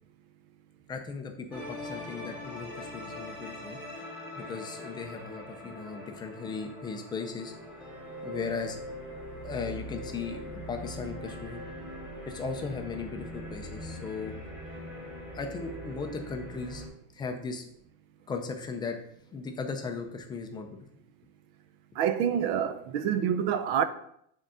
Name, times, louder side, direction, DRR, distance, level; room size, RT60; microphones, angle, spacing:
voice 1, 0.9-3.8 4.4-7.5 8.2-8.8 9.4-11.6 12.3-14.3 15.3-16.8 17.1-17.7 18.3-19.0 19.3-20.8, left 4 dB, 10° left, 0.4 m, -37 dB
sound 1, 1.5-16.9, left 1 dB, 5° right, 1.6 m, -42 dB
voice 2, 22.0-23.8, right 9 dB, 55° right, 0.7 m, -27 dB
6.7 x 3.8 x 6.1 m
cardioid pair, 165°, 37 cm